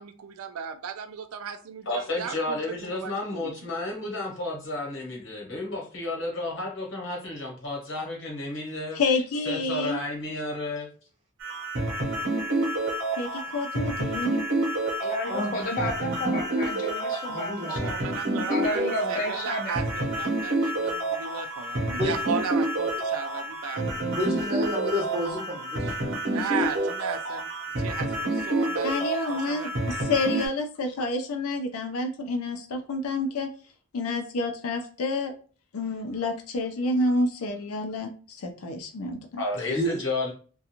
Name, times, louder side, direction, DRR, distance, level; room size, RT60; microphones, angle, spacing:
voice 1, 0.0-3.7 17.7-24.0 26.3-27.5 27.8-29.7, right 6 dB, 85° right, 0.4 m, -36 dB
voice 2, 1.9-9.0 9.4-10.9 39.4-40.3, left 2 dB, 60° left, 1.0 m, -32 dB
voice 3, 8.9-10.0 13.2-14.4 28.8-33.5 33.9-35.3 35.7-39.4, left 2 dB, 90° left, 0.5 m, -29 dB
sound 1, 11.4-30.5, right 1 dB, 55° right, 0.8 m, -29 dB
voice 4, 15.0-17.9 18.5-19.8, left 1 dB, 35° left, 0.5 m, -31 dB
voice 5, 17.3-17.7 22.0-22.1 24.1-25.9 39.7-40.0, equal, 25° right, 0.6 m, -30 dB
2.4 x 2.2 x 2.8 m
head